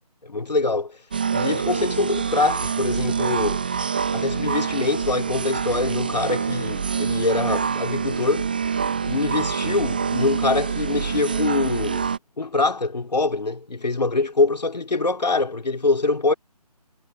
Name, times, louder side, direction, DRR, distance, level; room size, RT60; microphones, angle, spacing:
voice 1, 0.2-1.0 1.3-3.8 4.1-8.5 9.0-12.1 12.4-16.3, left 3 dB, 90° left, 2.5 m, -24 dB
sound 1, 1.1-12.2, right 6 dB, 15° right, 0.4 m, -26 dB
figure-of-eight pair, 165°, 21 cm